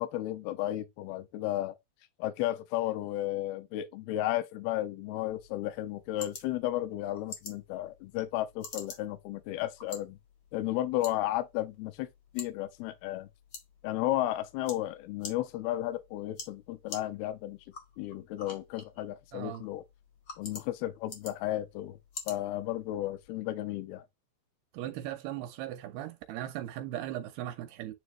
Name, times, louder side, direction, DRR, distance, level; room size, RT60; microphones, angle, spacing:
voice 1, 0.0-1.7 2.2-10.2 10.5-12.1 12.3-13.3 13.8-17.6 18.0-19.8 20.4-22.0 22.3-24.0, left 14 dB, 85° left, 2.5 m, -33 dB
sound 1, 5.3-23.3, left 4 dB, 60° left, 1.1 m, -49 dB
voice 2, 19.3-19.6 24.7-27.9, right 13 dB, 80° right, 2.5 m, -38 dB
9.4 x 3.3 x 3.1 m
omnidirectional pair, 4.7 m